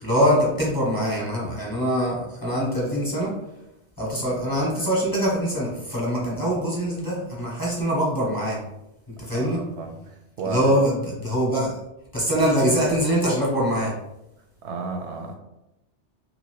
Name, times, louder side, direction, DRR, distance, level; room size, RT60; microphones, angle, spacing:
voice 1, 0.0-3.4 4.0-8.6 9.1-9.6 10.4-11.8 12.1-14.0, equal, 20° left, -6 dB, 0.8 m, -23 dB
voice 2, 9.3-10.7 14.6-15.3, right 4 dB, 80° right, 4 dB, 0.9 m, -33 dB
2.8 x 2.7 x 3.0 m, 0.90 s
omnidirectional pair, 1.1 m